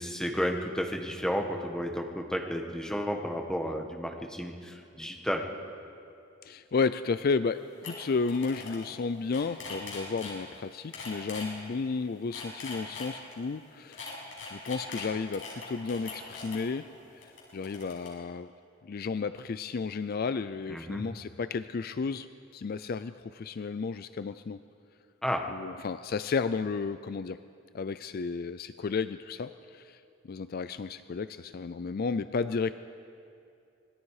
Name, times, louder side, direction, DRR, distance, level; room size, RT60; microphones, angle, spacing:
voice 1, 0.0-5.4 20.7-21.0 25.2-25.4, equal, 5° left, 2 dB, 1.5 m, -32 dB
voice 2, 6.4-16.9 17.1-17.3 17.5-18.5 18.8-22.3 22.5-24.6 25.5-27.4 27.7-32.7, left 4 dB, 50° left, 13 dB, 0.4 m, -33 dB
sound 1, 7.5-7.6 7.8-7.9 8.2-8.8 9.1-10.3 10.9-11.4 12.1-13.4 13.9-16.6 17.2-18.1, left 4 dB, 75° left, 6.3 m, -41 dB
25.5 x 20.5 x 4.9 m, 2.5 s
head